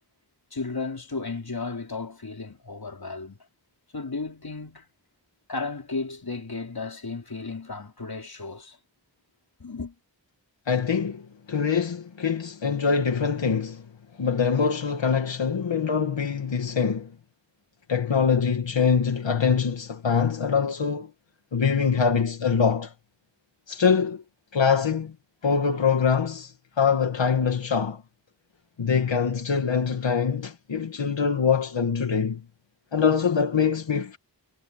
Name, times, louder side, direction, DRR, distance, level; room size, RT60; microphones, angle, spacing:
voice 1, 0.5-3.4 3.9-4.9 5.5-8.8 9.6-9.9, left 3 dB, 55° left, 4.3 m, -34 dB
voice 2, 10.7-13.9 14.2-17.1 17.9-21.1 21.5-22.9 23.7-24.2 24.5-25.1 25.4-28.0 28.8-32.4 32.9-34.2, left 6 dB, 90° left, 2.0 m, -24 dB
wide cardioid pair, 45°, 43 cm